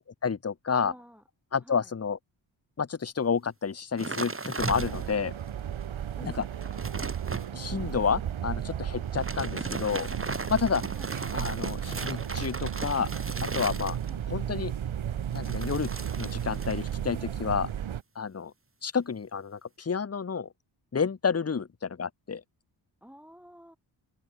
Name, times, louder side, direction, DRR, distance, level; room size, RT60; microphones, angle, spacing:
voice 1, 0.2-0.9 1.5-2.2 2.8-5.3 6.2-6.3 7.5-10.1 10.5-10.8 11.3-13.1 13.4-14.0 14.3-14.7 15.3-15.9 16.2-17.7 18.1-18.5 18.8-20.5 20.9-21.7 22.0-22.4, left 6 dB, 30° left, 1.3 m, -30 dB
voice 2, 0.8-1.2 1.6-1.9 6.2-6.4 10.9-11.2 14.0-14.3 21.5-21.7 23.0-23.8, equal, 5° right, 7.9 m, -51 dB
sound 1, 4.0-5.3 5.8-5.9 6.3-7.5 9.0-14.3 15.3-17.0 17.3-17.7, right 3 dB, 25° right, 3.9 m, -37 dB
sound 2, 4.6-18.0, right 9 dB, 80° right, 2.1 m, -34 dB
open air
cardioid pair, 85°, 47 cm